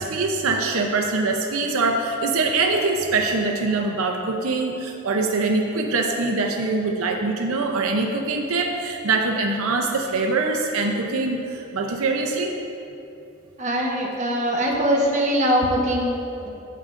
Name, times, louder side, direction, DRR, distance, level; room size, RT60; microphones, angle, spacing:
voice 1, 0.0-12.5, right 3 dB, 90° right, 3 dB, 0.6 m, -23 dB
voice 2, 13.6-16.5, equal, 35° right, -2 dB, 1.0 m, -22 dB
11.0 x 7.5 x 2.5 m, 2.7 s
head